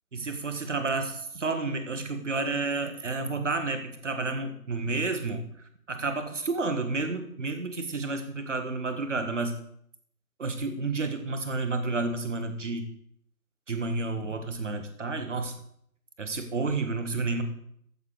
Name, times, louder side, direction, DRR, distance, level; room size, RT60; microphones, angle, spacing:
voice 1, 0.1-5.5 5.9-9.5 10.4-12.9 13.7-15.5 16.2-17.4, right 3 dB, 50° right, 8 dB, 1.8 m, -30 dB
14.0 x 7.1 x 4.9 m, 0.69 s
figure-of-eight pair, 150°, 45 cm